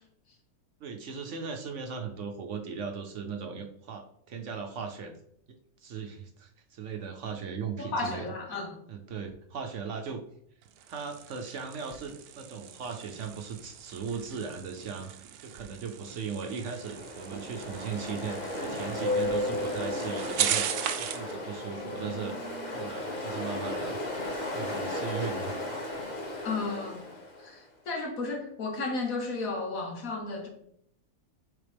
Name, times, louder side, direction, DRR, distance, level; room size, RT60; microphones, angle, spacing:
voice 1, 0.8-5.1 5.5-8.3 8.9-10.2 10.9-15.1 15.4-24.0 24.5-25.5, right 6 dB, 60° right, 0.9 m, -38 dB
voice 2, 7.8-8.8 26.4-27.0 27.4-30.5, left 3 dB, 70° left, 1.6 m, -33 dB
sound 1, 10.6-21.3, right 10 dB, 85° right, 1.1 m, -37 dB
Ocean, 16.4-27.5, left 1 dB, 30° left, 1.5 m, -34 dB
6.7 x 4.2 x 3.4 m
omnidirectional pair, 1.5 m